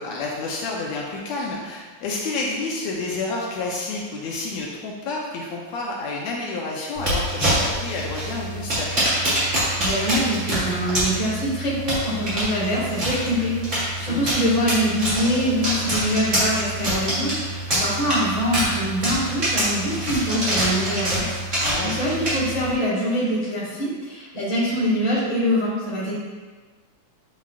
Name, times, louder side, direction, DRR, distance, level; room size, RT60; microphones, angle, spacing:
voice 1, 0.0-9.1 14.1-14.3 21.6-22.0, left 3 dB, 75° left, -3 dB, 1.9 m, -29 dB
sound 1, 6.9-22.7, right 1 dB, 30° right, 2.1 m, -25 dB
voice 2, 9.8-26.1, equal, 15° left, -7 dB, 1.5 m, -24 dB
8.3 x 5.8 x 2.5 m, 1.4 s
omnidirectional pair, 3.3 m